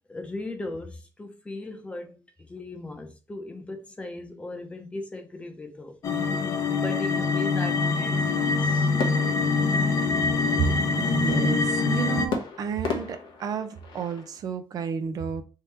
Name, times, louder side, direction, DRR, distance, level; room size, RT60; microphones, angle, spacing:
voice 1, 0.1-2.2 2.5-6.0 6.7-8.9, left 2 dB, 15° left, 0.8 m, -37 dB
sound 1, 6.0-12.3, left 4 dB, 50° left, 0.7 m, -24 dB
sound 2, 9.0-10.5 12.3-14.4, left 5 dB, 80° left, 1.0 m, -35 dB
voice 2, 10.6-15.4, right 6 dB, 55° right, 0.5 m, -31 dB
3.6 x 3.0 x 4.2 m
cardioid pair, 155°, 8 cm